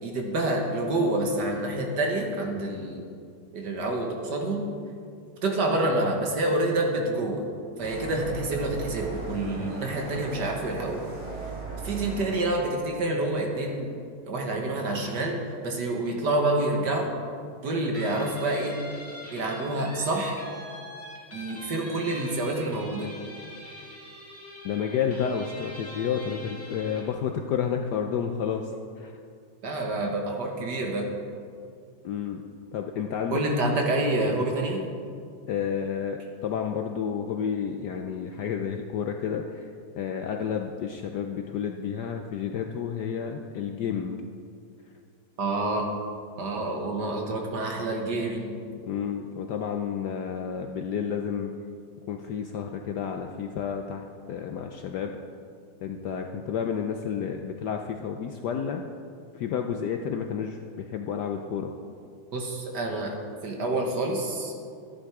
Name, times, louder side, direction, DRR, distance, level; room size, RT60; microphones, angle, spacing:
voice 1, 0.0-3.0 3.5-4.6 5.4-7.5 7.8-11.0 11.8-13.9 14.3-15.4 15.6-17.1 17.6-18.8 19.3-20.4 21.3-23.1 29.6-31.1 33.3-34.8 45.4-45.8 46.4-48.6 62.3-63.2 63.4-64.5, right 2 dB, 55° right, 1 dB, 1.9 m, -27 dB
sound 1, 7.8-12.6, right 3 dB, 80° right, 3.9 m, -37 dB
Guitar, 17.9-27.2, left 1 dB, 5° left, 2.0 m, -44 dB
voice 2, 24.6-28.7 29.0-29.1 32.0-32.4 32.7-33.4 35.5-39.6 39.9-44.2 48.7-51.5 52.1-55.1 55.8-58.8 59.3-61.7, left 7 dB, 70° left, 4 dB, 1.0 m, -30 dB
13.0 x 10.5 x 4.8 m, 2.3 s
omnidirectional pair, 2.3 m